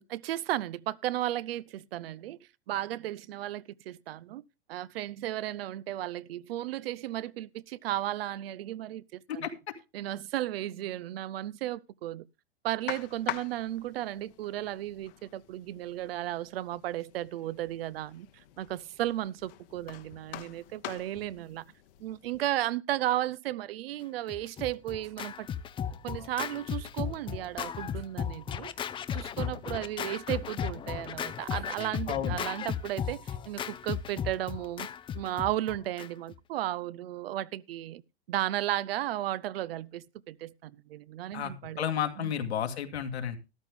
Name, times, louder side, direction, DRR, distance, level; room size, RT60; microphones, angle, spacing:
voice 1, 0.0-2.4 2.7-4.4 4.7-9.5 9.9-12.3 12.6-21.6 22.0-25.5 26.0-34.9 35.1-38.0 38.3-41.8 42.2-42.3, right 14 dB, 65° right, 0.7 m, -34 dB
sound 1, 12.9-22.4, left 14 dB, 55° left, 1.2 m, -45 dB
Scratching (performance technique), 24.3-36.4, left 8 dB, 15° left, 0.5 m, -36 dB
voice 2, 32.1-32.4 41.3-41.5 41.8-43.4, left 9 dB, 80° left, 2.2 m, -31 dB
13.5 x 11.5 x 3.5 m
hypercardioid pair, 115°, 32 cm